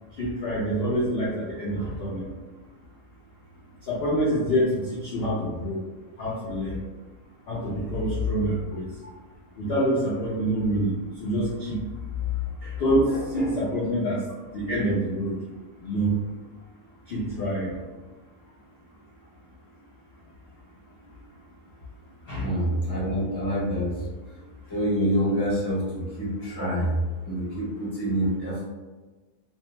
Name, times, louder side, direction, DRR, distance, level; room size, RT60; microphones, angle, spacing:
voice 1, 0.2-2.2 3.9-4.7 5.0-5.8 6.2-6.8 7.5-8.8 9.6-10.9 11.2-11.8 12.6-14.2 14.5-15.4 15.8-16.1 17.1-17.7 22.3-22.5, equal, 55° left, -7 dB, 0.7 m, -26 dB
voice 2, 22.4-23.9 24.7-27.0 27.2-28.6, equal, 20° left, -10 dB, 1.0 m, -26 dB
2.6 x 2.1 x 3.0 m, 1.2 s
omnidirectional pair, 1.6 m